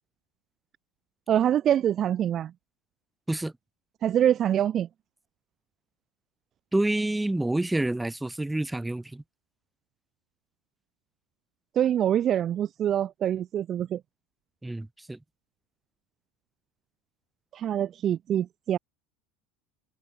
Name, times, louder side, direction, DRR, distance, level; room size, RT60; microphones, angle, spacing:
voice 1, 1.3-2.5 4.0-4.9 11.8-14.0 17.5-18.8, right 10 dB, 40° right, 0.5 m, -25 dB
voice 2, 6.7-9.2 14.6-15.2, right 1 dB, 10° right, 2.3 m, -28 dB
hypercardioid pair, 85°, 0 cm